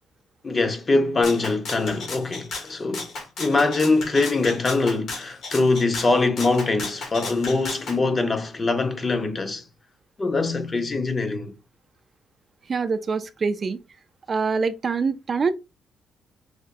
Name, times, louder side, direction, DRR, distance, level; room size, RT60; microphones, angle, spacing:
voice 1, 0.4-9.6 10.2-11.5, left 3 dB, 30° left, 0.7 m, -23 dB
Rattle (instrument), 1.2-8.0, left 3 dB, 70° left, 1.6 m, -35 dB
voice 2, 12.7-13.8 14.3-15.5, right 5 dB, 40° right, 0.4 m, -24 dB
4.8 x 2.1 x 2.6 m
cardioid pair, 90°, 0 cm